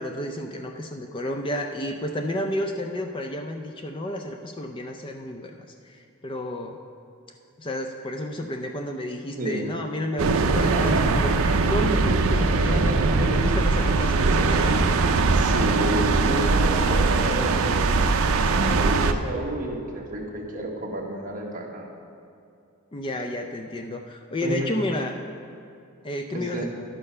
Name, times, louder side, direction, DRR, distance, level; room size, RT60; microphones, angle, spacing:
voice 1, 0.0-6.8 7.6-14.8 22.9-25.2 26.0-26.6, left 1 dB, 25° left, 4 dB, 0.4 m, -31 dB
voice 2, 9.4-9.7 10.6-11.2 12.5-13.2 15.3-18.0 18.5-21.9 24.4-24.8 26.3-26.7, right 1 dB, 35° right, -1 dB, 1.3 m, -30 dB
sound 1, 10.2-19.1, right 3 dB, 75° right, 0.5 m, -21 dB
11.0 x 6.6 x 5.4 m, 2.6 s
head